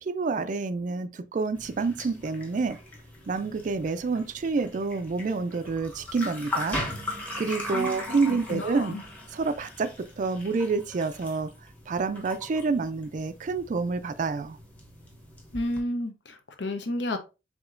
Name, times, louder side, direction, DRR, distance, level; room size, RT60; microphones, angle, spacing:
voice 1, 0.0-2.8 3.3-6.8 7.4-9.0 9.3-11.5 11.9-14.6, right 4 dB, 45° right, 0.4 m, -28 dB
sound 1, 1.5-15.8, left 1 dB, 10° left, 0.9 m, -39 dB
voice 2, 7.7-9.0 15.5-17.2, left 1 dB, 70° left, 0.8 m, -32 dB
4.9 x 3.7 x 2.5 m
head